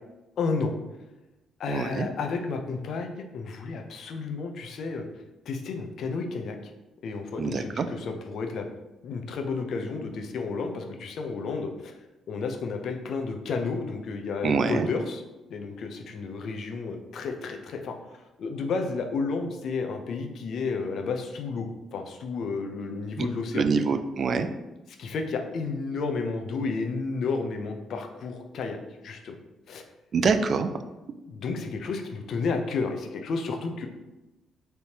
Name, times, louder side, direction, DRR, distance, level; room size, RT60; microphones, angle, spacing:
voice 1, 0.4-0.8 1.6-5.1 5.5-6.6 7.0-8.7 9.0-12.0 12.3-15.2 15.5-23.7 25.0-28.8 29.0-29.3 29.7-29.8 31.3-33.9, left 4 dB, 70° left, 4 dB, 0.6 m, -31 dB
voice 2, 1.7-2.1 7.4-7.9 14.4-14.9 23.2-23.3 23.5-24.5 30.1-30.7, right 5 dB, 50° right, 9 dB, 0.4 m, -25 dB
4.4 x 3.4 x 2.8 m, 1.0 s
cardioid pair, 90°, 0 cm